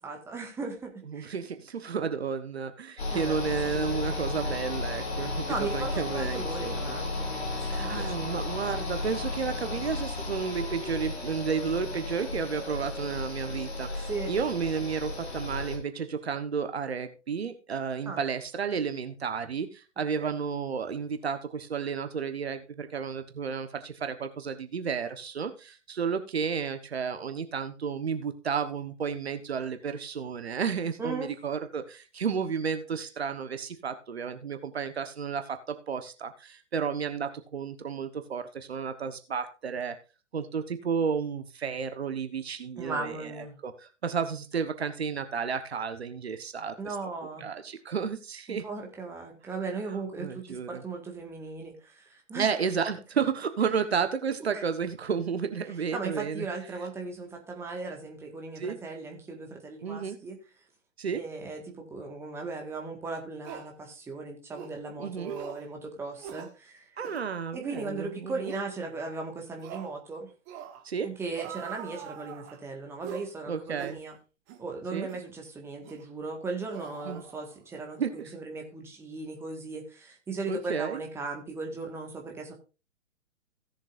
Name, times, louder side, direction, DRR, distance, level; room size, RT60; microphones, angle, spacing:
voice 1, 0.0-1.4 3.1-4.5 5.4-8.6 14.1-14.3 18.0-18.2 20.1-20.3 31.0-31.3 42.8-43.5 46.8-47.5 48.5-52.5 54.5-54.6 55.9-60.4 61.1-66.9 67.5-70.3 71.0-74.2 74.6-82.5, right 3 dB, 5° right, 2 dB, 1.7 m, -37 dB
voice 2, 1.1-7.0 7.7-39.9 40.3-43.3 43.6-46.9 47.4-48.6 50.2-50.8 52.3-56.4 58.6-58.8 59.8-60.2 61.0-61.2 65.0-65.3 67.0-68.5 70.8-71.1 73.5-74.0 74.9-75.1 77.0-77.2 78.0-78.3 80.5-81.0, right 6 dB, 60° right, 9 dB, 1.4 m, -32 dB
sound 1, 3.0-15.8, left 3 dB, 60° left, 3.3 m, -34 dB
sound 2, 62.7-62.8 63.4-63.7 64.5-64.8 65.2-65.7 66.2-66.5 67.0-67.3 67.7-67.9 68.4-68.7 69.6-69.9 70.5-70.8 71.3-72.6 73.0-73.3 73.8-74.0 74.5-74.6 75.1-75.3 75.9-76.0 76.7-77.8 78.0-78.2, right 8 dB, 25° right, 1.4 m, -42 dB
17.0 x 7.3 x 2.6 m, 0.32 s
figure-of-eight pair, 120°, 36 cm